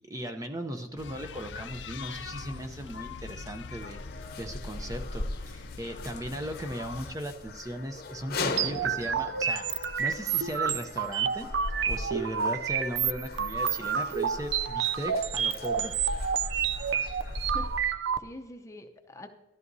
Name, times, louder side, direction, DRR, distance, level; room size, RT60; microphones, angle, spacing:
voice 1, 0.1-4.0 4.4-9.6 10.0-11.5 11.9-15.9, equal, 20° right, 6 dB, 0.7 m, -37 dB
sound 1, 1.0-7.1, left 5 dB, 80° left, 0.5 m, -43 dB
sound 2, 3.8-17.8, left 2 dB, 55° left, 0.8 m, -39 dB
sound 3, 8.6-18.2, right 7 dB, 80° right, 0.5 m, -29 dB
voice 2, 17.5-19.3, left 1 dB, 15° left, 5 dB, 0.7 m, -45 dB
14.0 x 12.5 x 2.7 m, 1.0 s
head